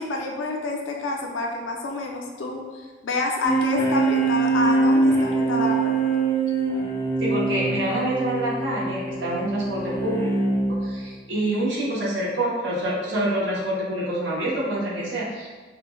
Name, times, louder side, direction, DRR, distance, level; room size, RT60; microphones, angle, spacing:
voice 1, 0.0-2.6 3.0-6.0, left 2 dB, 75° left, 1 dB, 0.5 m, -28 dB
sound 1, 3.4-11.0, right 3 dB, 10° left, 0.5 m, -23 dB
voice 2, 7.2-10.3 10.8-15.5, right 1 dB, 70° right, -6 dB, 0.9 m, -26 dB
4.8 x 2.1 x 2.3 m, 1.4 s
head